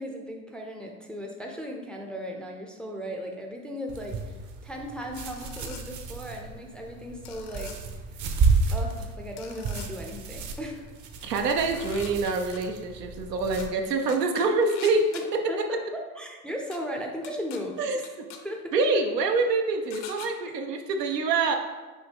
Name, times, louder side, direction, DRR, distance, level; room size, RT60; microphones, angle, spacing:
voice 1, 0.0-4.4 4.6-7.7 8.7-10.8 11.2-11.3 15.1-15.2 15.5-15.6 15.9-18.1 18.4-18.7 20.4-20.5, equal, ahead, 1 dB, 0.4 m, -37 dB
sound 1, 3.9-13.7, right 4 dB, 40° right, 0.7 m, -31 dB
sound 2, 5.2-5.8 7.3-7.8 9.4-9.9 11.5-12.6 13.6-13.7 14.1-15.2 16.7-16.8 17.2-17.6 18.0-18.4 19.9-20.3, left 8 dB, 70° left, 0.7 m, -44 dB
voice 2, 11.2-15.1 15.3-15.4 17.8-18.0 18.7-21.6, right 3 dB, 90° right, 4 dB, 0.6 m, -25 dB
5.4 x 2.6 x 3.4 m, 1.3 s
hypercardioid pair, 75°, 47 cm